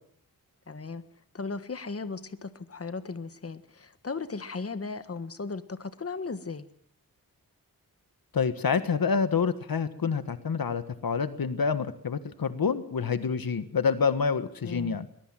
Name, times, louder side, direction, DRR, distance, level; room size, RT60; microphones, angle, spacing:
voice 1, 0.7-1.0 1.3-6.6 14.6-15.0, left 4 dB, 40° left, 11 dB, 1.6 m, -36 dB
voice 2, 8.3-15.1, left 5 dB, 75° left, 12 dB, 1.5 m, -27 dB
22.0 x 21.0 x 7.5 m, 0.63 s
wide cardioid pair, 95°, 36 cm